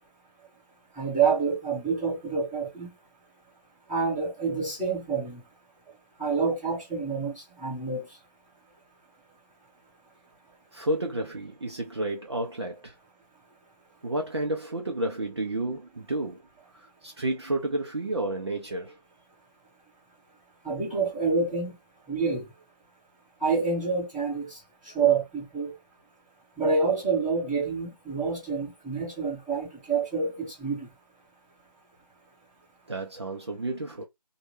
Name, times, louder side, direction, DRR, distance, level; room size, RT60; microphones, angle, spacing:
voice 1, 0.9-2.9 3.9-5.4 6.2-8.1 20.6-21.7 22.1-22.5 23.4-24.6 24.8-25.7 26.6-30.9, right 5 dB, ahead, 1.4 m, -27 dB
voice 2, 10.7-13.0 14.0-16.4 16.7-19.0 32.9-34.0, right 1 dB, 40° right, 0.5 m, -31 dB
3.1 x 2.2 x 3.1 m
figure-of-eight pair, 165°, 21 cm